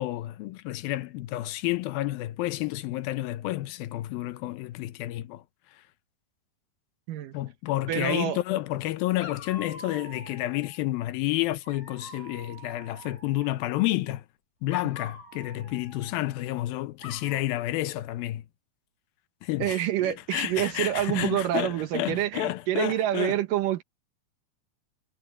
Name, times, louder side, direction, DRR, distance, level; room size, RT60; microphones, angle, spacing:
voice 1, 0.0-5.4 7.3-14.2 14.6-18.4 19.4-23.4, left 16 dB, 80° left, 2.6 m, -30 dB
Dog, 7.7-8.5 9.2-10.8 11.6-13.8 14.7-16.6 17.0-17.4, left 2 dB, 55° left, 9.3 m, -46 dB
voice 2, 7.9-8.4 19.6-23.8, right 12 dB, 70° right, 2.7 m, -27 dB
omnidirectional pair, 4.3 m